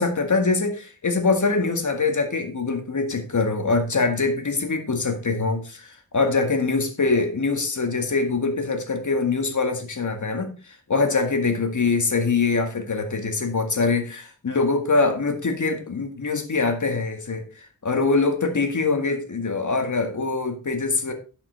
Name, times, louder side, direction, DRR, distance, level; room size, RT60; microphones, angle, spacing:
voice 1, 0.0-10.5 10.9-21.1, left 4 dB, 60° left, 4 dB, 2.0 m, -23 dB
11.5 x 5.9 x 4.1 m, 0.34 s
wide cardioid pair, 80°, 33 cm